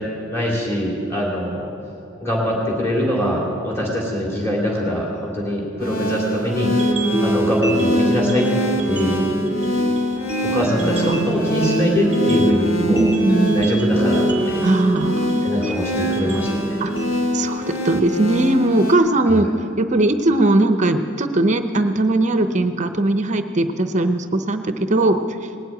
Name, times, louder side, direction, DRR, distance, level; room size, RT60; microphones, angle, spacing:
voice 1, 0.0-1.6 2.2-6.9 7.2-8.5 8.8-9.4 10.4-13.1 13.5-14.6 15.4-16.8 19.3-19.5, equal, 15° left, -3 dB, 3.2 m, -23 dB
sound 1, 5.8-18.9, equal, 90° left, 2.0 m, -25 dB
sound 2, 6.6-18.6, right 2 dB, 5° right, 2.6 m, -24 dB
voice 2, 12.9-13.7 14.6-15.5 16.8-16.9 17.3-19.5 19.8-25.5, right 2 dB, 35° right, 8 dB, 0.7 m, -19 dB
20.0 x 7.7 x 9.0 m, 2.7 s
head